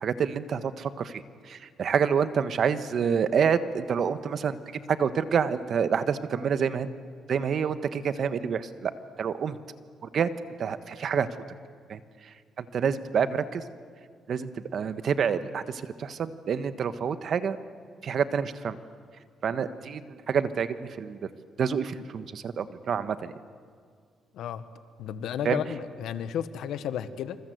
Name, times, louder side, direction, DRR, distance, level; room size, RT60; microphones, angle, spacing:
voice 1, 0.0-4.6 4.9-6.9 7.3-8.9 9.2-9.6 10.0-10.3 10.6-11.3 11.9-12.0 12.6-13.6 14.3-17.6 18.0-18.8 19.4-21.3 21.6-23.3 25.4-25.6, right 7 dB, 60° right, 11 dB, 1.3 m, -28 dB
voice 2, 24.3-24.6 25.0-27.4, left 9 dB, 80° left, 12 dB, 1.3 m, -33 dB
26.5 x 26.0 x 8.0 m, 2.1 s
cardioid pair, 90°, 0 cm